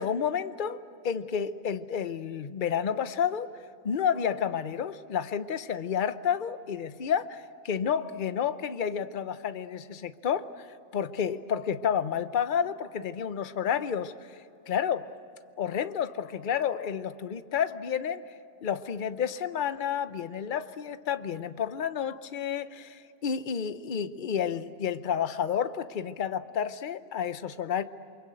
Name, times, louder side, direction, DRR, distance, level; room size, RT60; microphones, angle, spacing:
voice 1, 0.0-3.5 3.8-10.7 10.9-14.4 14.7-15.1 15.6-18.2 18.6-27.8, left 8 dB, 45° left, 12 dB, 0.9 m, -30 dB
28.5 x 24.0 x 7.9 m, 2.7 s
omnidirectional pair, 1.4 m